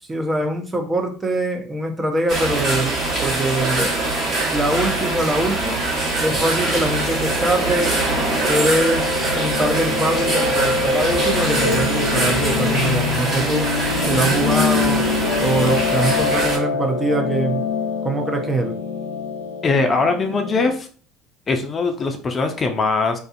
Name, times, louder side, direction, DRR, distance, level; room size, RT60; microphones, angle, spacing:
voice 1, 0.0-4.1 4.5-5.8 6.2-8.0 8.4-13.7 14.1-15.0 15.4-17.6 18.0-18.8, right 1 dB, 20° right, 3 dB, 0.6 m, -23 dB
sound 1, 2.3-16.6, right 2 dB, 50° right, 1.3 m, -23 dB
Piano, 6.2-20.7, left 5 dB, 85° left, 0.4 m, -25 dB
voice 2, 19.6-20.9 21.5-23.2, left 3 dB, 30° left, 5 dB, 0.5 m, -21 dB
2.4 x 2.4 x 2.4 m, 0.42 s
hypercardioid pair, 70°, 0 cm